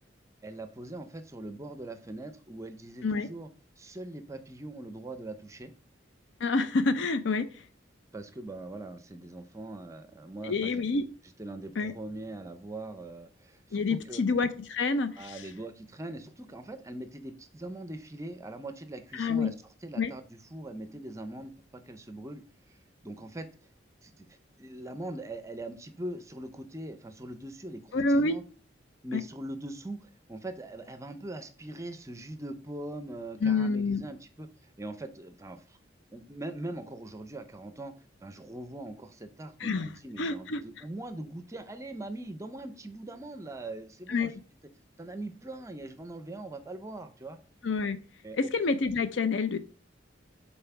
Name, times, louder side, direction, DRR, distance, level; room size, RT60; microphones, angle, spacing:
voice 1, 0.4-3.5 3.8-5.7 8.1-10.8 11.4-14.2 15.2-19.5 19.8-22.8 23.0-23.5 24.0-28.4 29.0-35.8 36.1-37.9 38.2-44.4 45.0-47.4 48.2-48.5, right 1 dB, 15° right, 9 dB, 0.5 m, -41 dB
voice 2, 6.4-7.5 10.4-11.0 11.8-11.9 13.7-15.4 19.1-19.5 20.0-20.1 27.9-28.4 33.4-34.1 39.6-39.9 40.2-40.6 44.1-44.3 47.6-48.0 48.3-49.6, left 3 dB, 70° left, 11 dB, 0.6 m, -27 dB
5.6 x 4.2 x 5.7 m, 0.39 s
head